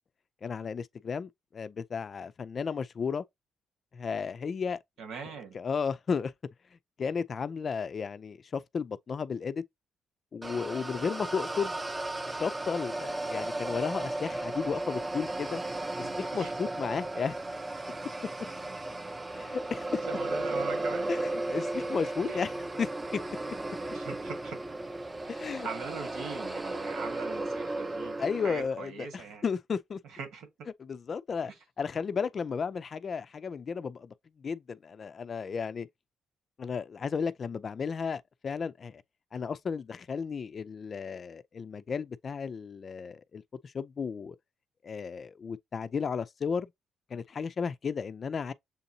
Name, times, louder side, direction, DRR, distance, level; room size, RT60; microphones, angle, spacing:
voice 1, 0.4-3.2 3.9-4.8 5.5-6.3 7.0-9.6 10.3-11.7 12.2-15.6 16.0-17.4 19.3-20.0 21.1-22.5 22.8-23.2 25.3-25.7 28.2-30.0 30.8-31.5 31.8-35.9 36.6-39.0 39.3-44.4 44.8-46.7 47.1-48.5, left 6 dB, 45° left, 0.3 m, -34 dB
voice 2, 5.0-5.6 16.0-16.5 20.0-21.2 22.2-22.4 23.9-24.6 25.6-29.4 30.0-30.7, right 5 dB, 80° right, 1.6 m, -41 dB
sound 1, 10.4-28.7, right 2 dB, 20° right, 0.6 m, -35 dB
6.8 x 2.7 x 2.7 m
cardioid pair, 90°, 0 cm